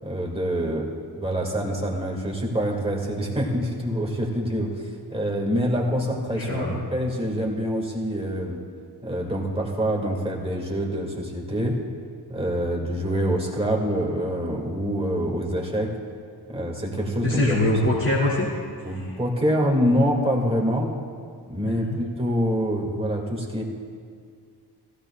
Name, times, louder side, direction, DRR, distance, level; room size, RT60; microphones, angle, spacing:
voice 1, 0.0-8.6 9.0-11.8 12.3-15.9 16.5-17.6 18.8-21.0 21.5-23.6, equal, 15° right, -1 dB, 1.9 m, -26 dB
voice 2, 5.9-6.8 17.2-19.2 21.6-22.0, left 1 dB, 40° left, -8 dB, 2.2 m, -25 dB
16.0 x 15.0 x 2.2 m, 2.2 s
wide cardioid pair, 100°, 42 cm